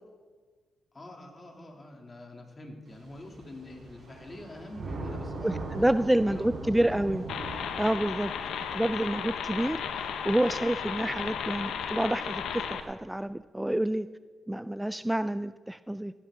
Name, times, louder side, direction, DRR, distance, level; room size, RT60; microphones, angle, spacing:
voice 1, 0.9-5.7 6.0-7.0 11.1-11.2, left 1 dB, 35° left, 2 dB, 2.7 m, -45 dB
Thunder / Rain, 2.9-12.8, right 3 dB, 70° right, 4.9 m, -42 dB
voice 2, 5.4-7.3 7.8-8.3 8.7-14.1 14.5-16.1, right 1 dB, 10° right, 13 dB, 0.3 m, -28 dB
sound 1, 7.3-12.8, left 7 dB, 85° left, 0.8 m, -34 dB
17.0 x 11.0 x 3.8 m, 1.5 s
cardioid pair, 65°, 0 cm